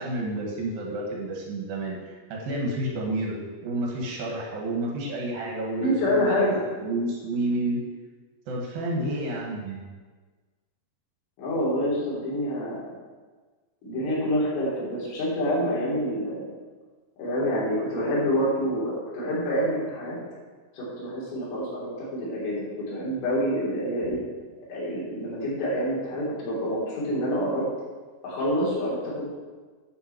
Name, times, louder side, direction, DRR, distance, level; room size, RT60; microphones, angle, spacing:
voice 1, 0.0-3.4 3.6-6.5 6.8-7.8 8.5-9.8, right 1 dB, 60° right, -1 dB, 3.0 m, -30 dB
voice 2, 5.8-6.6 11.4-12.9 13.8-16.5 17.2-20.2 20.7-22.6 22.9-24.2 24.7-27.6 28.2-29.2, equal, 85° left, -6 dB, 6.0 m, -27 dB
12.5 x 8.1 x 4.6 m, 1.4 s
omnidirectional pair, 5.5 m